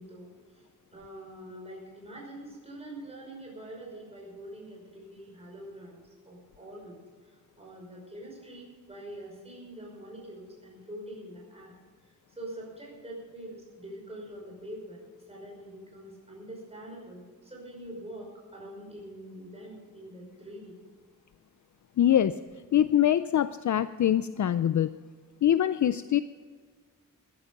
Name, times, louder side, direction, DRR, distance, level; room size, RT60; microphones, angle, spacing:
voice 1, 0.0-11.7 12.0-20.8, right 1 dB, 20° right, -2 dB, 5.5 m, -45 dB
voice 2, 22.0-22.4 22.7-25.0 25.4-26.2, left 10 dB, 60° left, 13 dB, 0.5 m, -24 dB
14.5 x 13.0 x 5.3 m, 1.5 s
wide cardioid pair, 145°, 33 cm